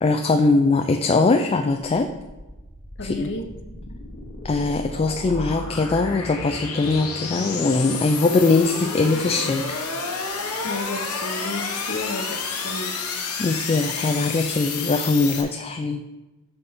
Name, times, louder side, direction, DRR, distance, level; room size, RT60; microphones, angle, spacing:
voice 1, 0.0-2.1 3.0-3.3 4.4-9.8 13.4-16.0, left 3 dB, 25° left, 6 dB, 0.3 m, -21 dB
sound 1, 2.1-15.4, left 4 dB, 90° left, 1.1 m, -31 dB
voice 2, 3.0-3.5 10.6-13.1, left 2 dB, 55° left, 4 dB, 0.9 m, -32 dB
12.0 x 4.2 x 3.6 m, 1.1 s
head